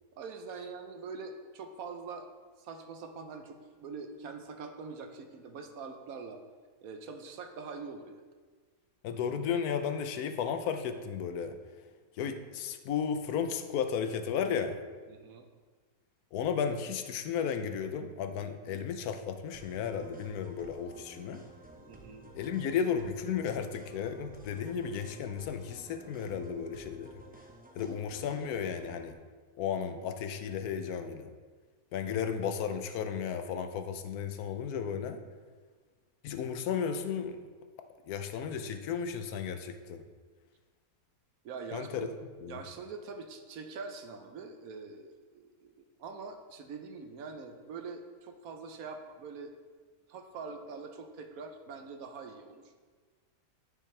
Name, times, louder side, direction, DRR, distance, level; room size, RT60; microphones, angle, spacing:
voice 1, 0.2-2.3 2.6-6.4 6.8-8.2 15.1-15.5 18.6-18.8 21.9-22.2 41.4-42.1 42.4-45.7 46.0-49.5 50.1-52.6, right 4 dB, 70° right, 6 dB, 1.1 m, -44 dB
voice 2, 9.0-11.6 12.2-14.8 16.3-21.4 22.3-27.2 27.8-29.1 29.6-31.3 31.9-35.2 36.2-37.4 38.1-40.0 41.7-42.1 42.4-42.6, left 7 dB, 80° left, 7 dB, 1.1 m, -34 dB
sound 1, 19.5-29.1, right 2 dB, 15° right, 0.3 m, -53 dB
10.0 x 5.6 x 3.2 m, 1.5 s
omnidirectional pair, 1.6 m